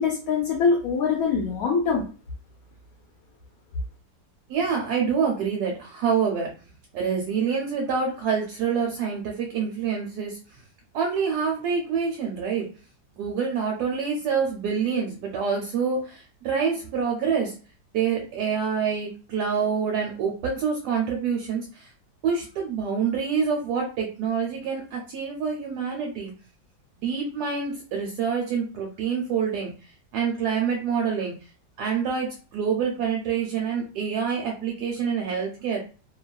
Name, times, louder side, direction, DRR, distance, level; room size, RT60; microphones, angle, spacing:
voice 1, 0.0-2.0, left 5 dB, 70° left, -2 dB, 1.0 m, -23 dB
voice 2, 4.5-6.5 6.9-10.6 10.9-12.7 13.1-17.5 17.9-21.9 22.2-26.3 27.0-31.5 31.8-35.8, right 6 dB, 75° right, 1 dB, 1.1 m, -26 dB
2.8 x 2.3 x 2.2 m, 0.35 s
omnidirectional pair, 1.9 m